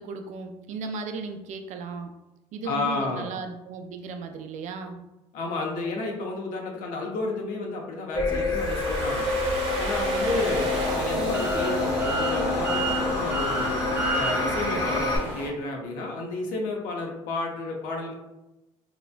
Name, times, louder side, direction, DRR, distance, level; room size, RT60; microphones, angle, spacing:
voice 1, 0.0-2.1 2.5-5.0, right 4 dB, 60° right, 6 dB, 0.4 m, -36 dB
voice 2, 2.6-3.3 5.3-9.3 9.8-13.8 14.1-18.1, left 3 dB, 75° left, 1 dB, 0.7 m, -31 dB
sound 1, 8.2-15.2, left 2 dB, 25° left, 0.7 m, -27 dB
Domestic sounds home sounds, 8.3-13.0, right 2 dB, 40° right, 0.9 m, -36 dB
sound 2, 10.2-15.5, right 1 dB, 15° right, 0.8 m, -31 dB
2.9 x 2.1 x 2.4 m, 0.99 s
supercardioid pair, 80°, 14 cm